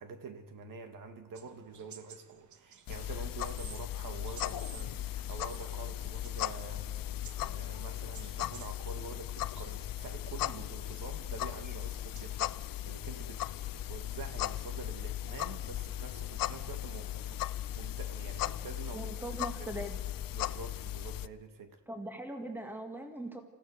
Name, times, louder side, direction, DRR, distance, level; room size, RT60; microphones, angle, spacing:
voice 1, 0.0-13.5 13.7-19.1 19.6-19.7 20.3-21.8, right 4 dB, 75° right, 7 dB, 2.0 m, -47 dB
sound 1, 1.3-12.9, right 8 dB, 60° right, 1.2 m, -56 dB
sound 2, 2.9-21.3, left 13 dB, 85° left, 0.6 m, -37 dB
voice 2, 18.9-20.0 21.9-23.4, right 1 dB, 5° right, 5 dB, 1.9 m, -40 dB
28.0 x 16.0 x 6.6 m, 1.3 s
wide cardioid pair, 155°, 33 cm